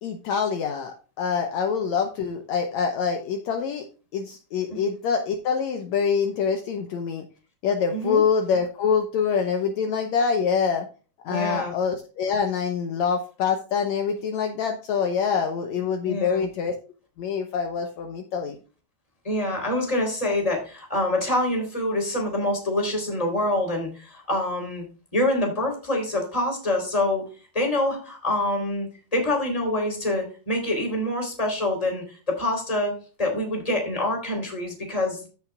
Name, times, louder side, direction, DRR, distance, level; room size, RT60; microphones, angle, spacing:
voice 1, 0.0-3.8 4.1-7.3 7.6-10.9 11.2-16.8 17.2-18.6, left 6 dB, 70° left, 5 dB, 1.9 m, -25 dB
voice 2, 7.9-8.2 11.3-11.7 16.0-16.4 19.2-24.8 25.1-27.2 27.5-35.2, left 1 dB, 10° left, 1 dB, 3.4 m, -26 dB
15.0 x 6.4 x 2.4 m, 0.35 s
omnidirectional pair, 3.8 m